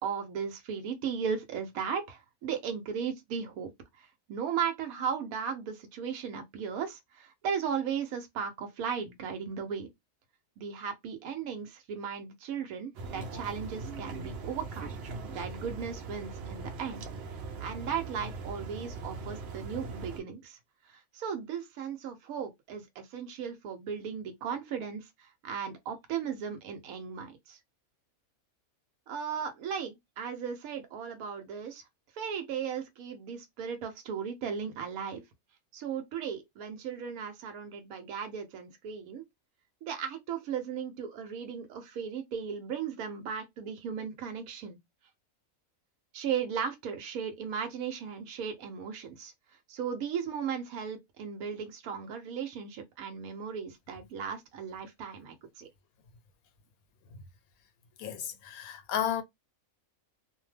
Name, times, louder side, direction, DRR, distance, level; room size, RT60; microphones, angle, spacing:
voice 1, 0.0-3.7 4.0-9.9 10.6-14.9 15.3-17.0 17.6-20.6 20.9-27.6 29.1-31.8 32.1-35.2 35.7-39.2 39.8-44.8 46.1-49.3 49.7-55.7, right 7 dB, 80° right, 1.1 m, -36 dB
sound 1, 12.9-20.2, right 3 dB, 60° right, 0.7 m, -40 dB
voice 2, 58.0-59.2, left 9 dB, 85° left, 1.1 m, -33 dB
2.5 x 2.1 x 3.2 m
omnidirectional pair, 1.5 m